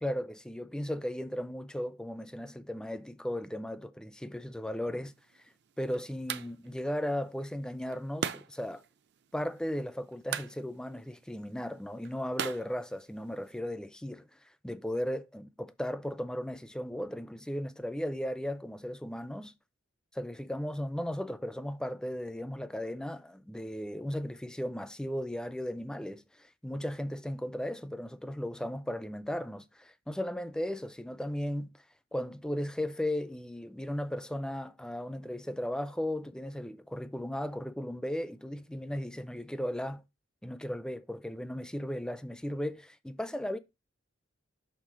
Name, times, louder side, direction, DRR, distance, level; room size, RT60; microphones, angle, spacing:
voice 1, 0.0-5.1 5.4-8.8 9.3-19.5 20.1-31.7 32.1-40.0 40.4-43.6, left 1 dB, 5° left, 0.4 m, -36 dB
sound 1, 5.1-13.6, right 7 dB, 60° right, 0.5 m, -42 dB
6.6 x 3.2 x 5.0 m
head